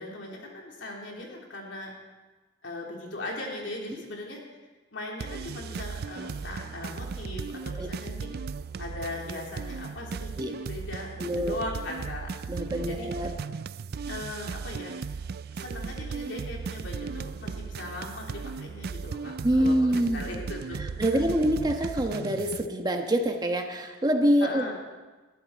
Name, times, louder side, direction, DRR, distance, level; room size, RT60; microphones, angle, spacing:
voice 1, 0.0-1.9 2.6-4.4 4.9-8.3 8.8-10.3 10.7-12.3 12.6-13.1 14.1-15.0 15.5-20.8 21.1-21.2 24.4-24.7, left 2 dB, 75° left, -1 dB, 3.6 m, -39 dB
sound 1, 5.2-22.7, right 5 dB, 55° right, 0.4 m, -36 dB
voice 2, 11.2-11.7 12.5-13.3 19.4-20.2 21.0-24.7, right 1 dB, 20° right, 4 dB, 1.3 m, -25 dB
21.0 x 14.0 x 4.2 m, 1.2 s
head